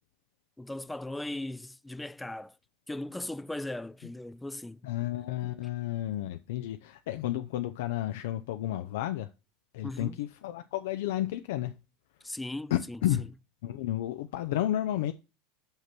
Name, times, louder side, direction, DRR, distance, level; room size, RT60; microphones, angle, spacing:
voice 1, 0.6-2.5 2.9-4.8 5.4-5.6 9.8-10.2 12.2-13.0, left 1 dB, 5° left, 0.3 m, -38 dB
voice 2, 4.8-9.3 9.7-11.7 12.7-13.3 13.6-15.1, left 13 dB, 80° left, 0.6 m, -32 dB
5.8 x 5.7 x 6.0 m
supercardioid pair, 130°, 0 cm